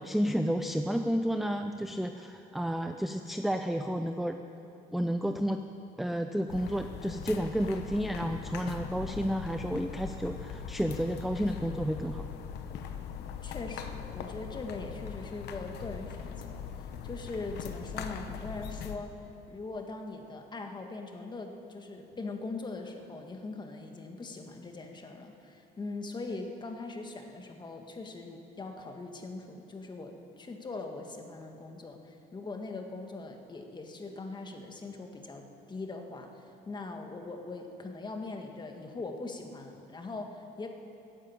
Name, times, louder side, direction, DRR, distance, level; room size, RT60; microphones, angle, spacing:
voice 1, 0.0-4.4 4.9-5.6 6.0-12.2, equal, ahead, 6 dB, 0.5 m, -31 dB
sound 1, 6.5-19.0, left 7 dB, 80° left, 1.0 m, -40 dB
voice 2, 13.4-16.6 17.0-19.2 19.5-40.7, left 3 dB, 25° left, 4 dB, 1.8 m, -41 dB
15.5 x 10.0 x 8.8 m, 2.7 s
cardioid pair, 110°, 17 cm